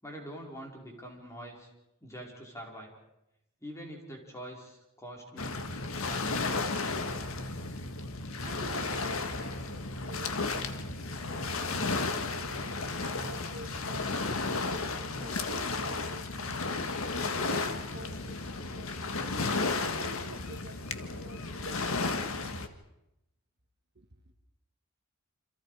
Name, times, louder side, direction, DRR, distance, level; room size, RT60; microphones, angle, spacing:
voice 1, 0.0-1.7 2.0-2.9 3.6-5.7 6.1-6.4, equal, 15° left, 0 dB, 5.0 m, -44 dB
Waves surf, 5.4-22.7, left 3 dB, 75° left, 1.7 m, -33 dB
voice 2, 8.5-11.0 11.3-12.7 13.2-16.9 17.3-19.1 19.4-22.8 24.0-24.1, right 2 dB, 55° right, 5 dB, 1.9 m, -49 dB
28.5 x 26.5 x 5.0 m, 0.88 s
head